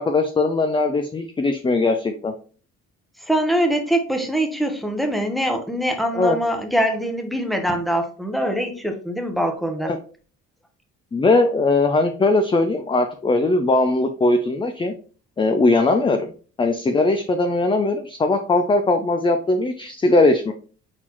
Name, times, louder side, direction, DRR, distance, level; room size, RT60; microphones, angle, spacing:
voice 1, 0.0-2.3 6.1-6.4 9.8-10.0 11.1-14.9 15.4-16.3 16.6-20.5, left 2 dB, 15° left, 7 dB, 0.4 m, -19 dB
voice 2, 3.2-9.9, right 1 dB, ahead, 5 dB, 0.8 m, -23 dB
4.2 x 4.2 x 2.9 m, 0.40 s
cardioid pair, 90°, 30 cm